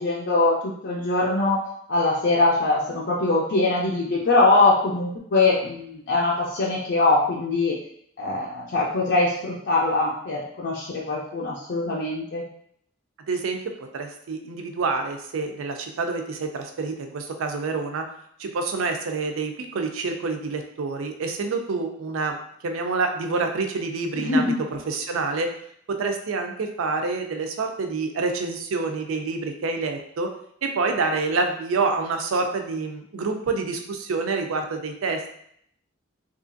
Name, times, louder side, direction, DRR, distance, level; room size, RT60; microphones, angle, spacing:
voice 1, 0.0-1.6 1.9-7.8 8.2-12.4 24.2-24.6, left 2 dB, 55° left, -5 dB, 0.5 m, -22 dB
voice 2, 13.3-18.0 18.4-22.4 22.6-25.5 25.9-30.3 30.6-35.3, right 3 dB, 80° right, 5 dB, 0.4 m, -27 dB
2.9 x 2.4 x 2.5 m, 0.68 s
head